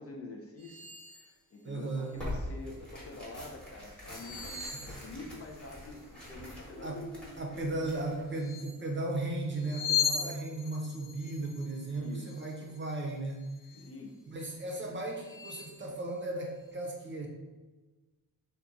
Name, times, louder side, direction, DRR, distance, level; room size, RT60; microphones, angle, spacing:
voice 1, 0.0-7.1 10.2-10.4 11.9-12.7 13.7-14.2, left 2 dB, 40° left, 1 dB, 0.4 m, -47 dB
sound 1, 0.6-1.3 1.7-2.4 4.0-5.7 8.3-8.9 9.5-13.0 13.4-13.9 14.5-14.6 15.1-15.8, left 8 dB, 25° left, 0.9 m, -38 dB
voice 2, 1.6-2.1 4.7-4.8 6.8-7.0 7.4-13.4 14.3-17.3, right 2 dB, 30° right, 0 dB, 0.6 m, -36 dB
Tearing, 2.1-8.3, left 1 dB, ahead, 1.1 m, -44 dB
sound 2, 3.1-5.0 5.8-6.2 6.7-11.4 12.0-12.1 13.7-13.9, equal, 70° left, 1.3 m, -52 dB
2.8 x 2.3 x 2.5 m, 1.2 s
cardioid pair, 65°, 39 cm